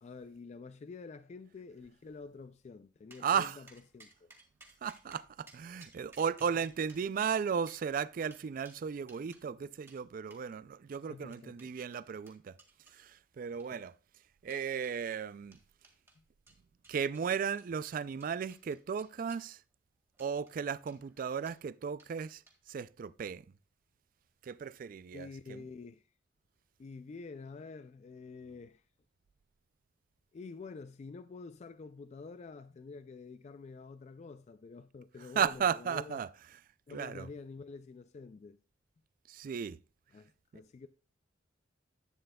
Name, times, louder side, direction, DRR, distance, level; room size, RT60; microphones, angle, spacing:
voice 1, 0.0-4.3 11.1-11.7 13.5-13.8 16.2-16.3 25.1-26.1 26.8-28.9 30.3-36.3 36.9-38.6 40.1-40.9, left 4 dB, 35° left, 0.3 m, -48 dB
sound 1, 3.1-9.5 9.9-10.0 10.3-10.5 11.0-13.0 13.5-13.9 14.5-15.0 15.5-16.2 16.5-19.5 20.1-20.6 20.9-21.6 22.0-22.1 22.5-22.8, right 2 dB, 15° right, 1.8 m, -60 dB
voice 2, 3.2-3.6 4.8-12.6 12.9-13.9 14.4-15.6 16.9-19.6 20.2-22.4 22.7-23.4 24.4-25.6 35.4-36.3 36.9-37.3 39.3-39.8, right 7 dB, 45° right, 0.3 m, -35 dB
11.0 x 9.0 x 2.3 m
head